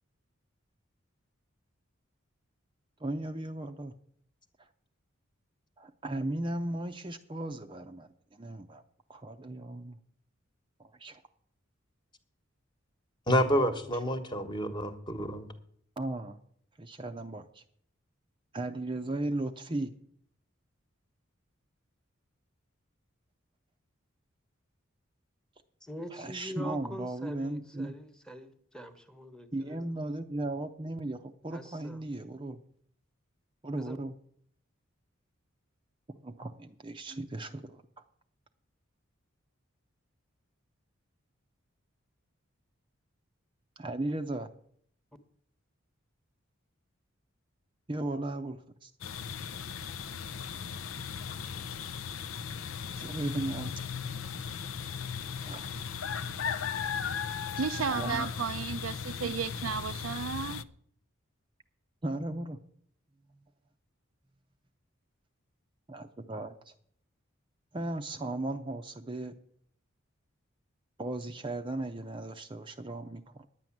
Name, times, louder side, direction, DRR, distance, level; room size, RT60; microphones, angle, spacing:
voice 1, 3.0-3.9 5.8-8.8 9.1-10.0 10.8-11.2 16.0-16.4 16.8-17.6 18.5-19.9 26.1-28.0 29.5-32.6 33.6-34.1 36.2-37.8 43.8-44.5 47.9-48.9 53.0-53.7 54.1-54.5 55.4-55.7 57.6-58.3 62.0-62.6 65.9-66.7 67.7-69.3 71.0-73.5, right 2 dB, 25° right, 0.6 m, -36 dB
voice 2, 13.3-15.4, equal, 25° left, 1.3 m, -28 dB
voice 3, 25.8-29.8 31.5-32.0 33.8-34.0, equal, 5° left, 1.1 m, -44 dB
sound 1, 49.0-60.6, left 7 dB, 80° left, 0.6 m, -37 dB
voice 4, 57.6-60.7, right 6 dB, 80° right, 0.5 m, -34 dB
10.5 x 9.3 x 7.3 m
head